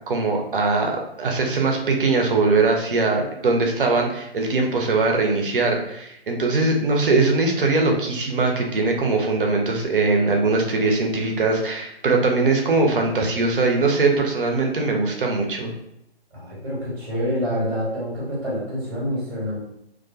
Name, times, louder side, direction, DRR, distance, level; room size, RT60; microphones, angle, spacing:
voice 1, 0.1-15.7, right 3 dB, 55° right, 2 dB, 0.5 m, -21 dB
voice 2, 16.3-19.6, equal, 35° right, -7 dB, 0.9 m, -27 dB
2.3 x 2.1 x 2.5 m, 0.80 s
figure-of-eight pair, 130°, 32 cm